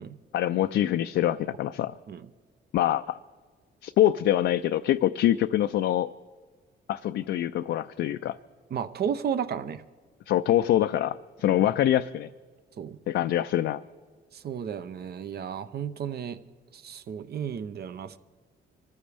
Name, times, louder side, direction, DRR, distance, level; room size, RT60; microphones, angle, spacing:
voice 1, 0.3-1.9 2.7-3.2 3.8-6.1 6.9-8.4 10.3-12.3 13.1-13.8, left 12 dB, 70° left, 0.4 m, -25 dB
voice 2, 8.7-9.8 11.4-11.6 12.8-13.0 14.3-16.4 16.7-18.2, right 8 dB, 55° right, 0.7 m, -33 dB
24.5 x 14.5 x 3.4 m
cardioid pair, 90°, 20 cm